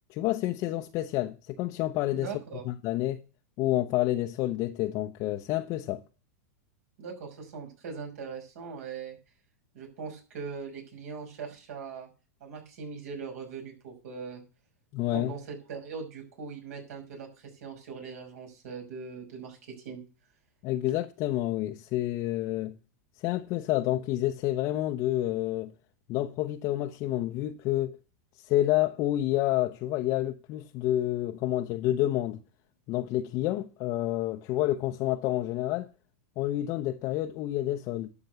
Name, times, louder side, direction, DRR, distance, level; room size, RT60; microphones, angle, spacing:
voice 1, 0.1-2.3 2.6-3.2 3.6-6.0 14.9-15.3 20.6-22.7 23.2-25.7 26.1-28.0 28.4-32.4 32.9-35.9 36.4-38.1, left 14 dB, 40° left, 0.7 m, -29 dB
voice 2, 2.1-2.6 7.0-9.2 9.7-12.1 12.4-14.4 15.1-19.6 19.8-20.0, right 5 dB, 70° right, 5.8 m, -40 dB
12.0 x 5.9 x 6.8 m
supercardioid pair, 140°, 8 cm